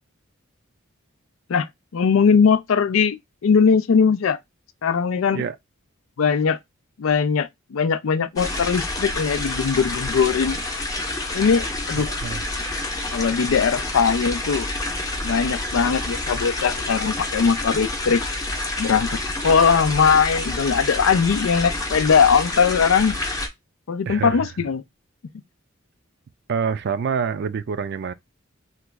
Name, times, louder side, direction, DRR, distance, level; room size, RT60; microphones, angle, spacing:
voice 1, 1.9-3.2 3.4-4.4 4.8-5.4 6.2-6.6 7.0-10.6 11.3-12.1 13.1-14.7 15.2-18.2 18.8-23.2 23.9-24.8, left 6 dB, 80° left, 0.4 m, -20 dB
sound 1, 8.4-23.5, left 2 dB, 20° left, 0.7 m, -28 dB
voice 2, 12.0-12.4 24.1-24.5 26.5-28.1, right 6 dB, 55° right, 0.4 m, -26 dB
3.0 x 2.3 x 3.3 m
head